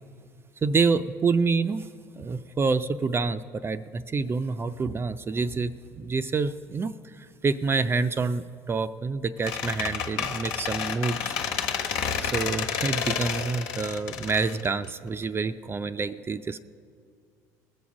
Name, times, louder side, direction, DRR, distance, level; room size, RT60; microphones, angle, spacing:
voice 1, 0.6-1.9 2.2-6.9 7.4-11.4 12.2-16.6, right 4 dB, 25° right, 11 dB, 0.4 m, -27 dB
Squeak, 9.4-15.2, left 7 dB, 75° left, 1.4 m, -30 dB
20.0 x 7.2 x 6.2 m, 2.2 s
supercardioid pair, 85°, 9 cm